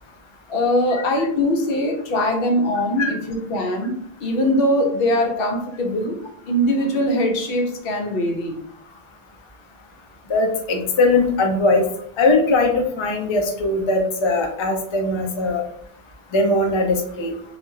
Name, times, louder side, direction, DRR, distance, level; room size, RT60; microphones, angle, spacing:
voice 1, 0.5-6.2 6.5-8.5, left 1 dB, 70° left, 2 dB, 0.8 m, -21 dB
voice 2, 10.3-11.8 12.2-15.6 16.3-17.3, left 2 dB, 45° left, 2 dB, 0.4 m, -20 dB
2.3 x 2.1 x 3.1 m, 0.64 s
omnidirectional pair, 1.0 m